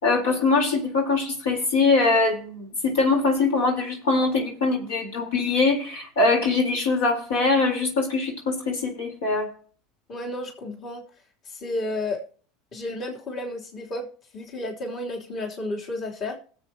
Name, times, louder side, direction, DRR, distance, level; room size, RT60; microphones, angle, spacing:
voice 1, 0.0-9.5, left 3 dB, 80° left, 2 dB, 4.0 m, -22 dB
voice 2, 10.1-11.0 11.4-12.2 12.7-14.1 14.3-16.4, left 2 dB, 45° left, -1 dB, 3.2 m, -32 dB
20.0 x 7.9 x 2.9 m, 0.43 s
hypercardioid pair, 85°, 0 cm